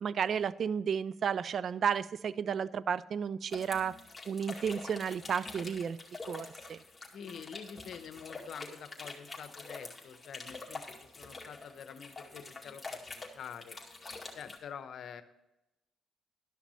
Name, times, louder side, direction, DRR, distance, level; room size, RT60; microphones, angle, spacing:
voice 1, 0.0-4.0 4.3-6.0 6.3-6.8, right 7 dB, 55° right, 18 dB, 0.3 m, -32 dB
sound 1, 3.5-14.6, left 3 dB, 20° left, 2.2 m, -46 dB
voice 2, 7.1-13.8 14.3-15.2, left 7 dB, 65° left, 11 dB, 0.9 m, -47 dB
12.0 x 5.9 x 5.6 m, 0.93 s
cardioid pair, 90°, 0 cm